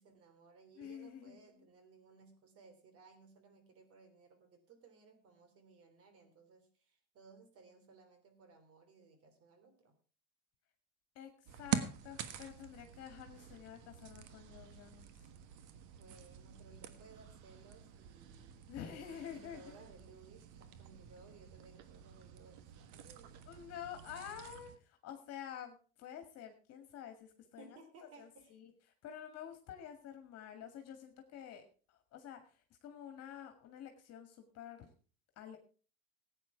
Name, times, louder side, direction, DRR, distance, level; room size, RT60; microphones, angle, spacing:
voice 1, 0.0-9.9 15.9-23.4 27.6-28.6, right 4 dB, 50° right, 8 dB, 3.3 m, -60 dB
voice 2, 0.8-1.4 11.2-11.3 11.6-15.1 18.7-19.8 23.5-27.8 28.2-28.7 29.0-34.9 35.4-35.6, left 9 dB, 50° left, 6 dB, 2.1 m, -49 dB
sound 1, 11.5-24.8, right 9 dB, 70° right, 1.5 m, -46 dB
15.0 x 9.2 x 4.6 m, 0.39 s
supercardioid pair, 120°, 31 cm